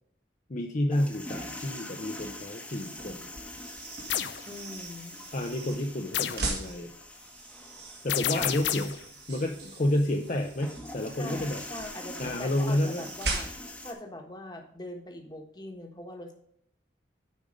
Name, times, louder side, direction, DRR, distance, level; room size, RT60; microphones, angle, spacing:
voice 1, 0.5-3.3 5.3-6.9 8.0-11.6 12.2-13.0, left 1 dB, 45° left, 2 dB, 0.7 m, -30 dB
sound 1, 0.9-13.9, left 1 dB, 5° left, 1.0 m, -44 dB
sound 2, 2.7-13.9, right 3 dB, 65° right, 2.1 m, -40 dB
sound 3, 4.1-4.4 6.1-6.5 8.1-9.0, left 10 dB, 80° left, 0.6 m, -30 dB
voice 2, 4.5-5.2 8.4-8.8 11.2-13.5 13.8-16.3, left 1 dB, 25° left, 3 dB, 1.3 m, -42 dB
8.6 x 5.3 x 5.1 m, 0.68 s
head